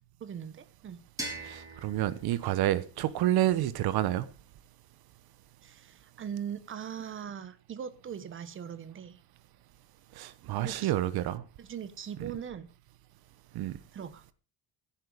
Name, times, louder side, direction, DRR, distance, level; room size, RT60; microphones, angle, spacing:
voice 1, 0.2-1.0 5.6-9.2 10.6-10.9 11.6-12.7 13.9-14.2, right 8 dB, 25° right, 1.3 m, -40 dB
sound 1, 1.2-4.0, right 2 dB, 5° right, 3.7 m, -43 dB
voice 2, 1.4-4.3 10.2-11.4 13.5-13.8, right 13 dB, 55° right, 1.2 m, -29 dB
15.0 x 10.5 x 5.2 m
cardioid pair, 180°, 45 cm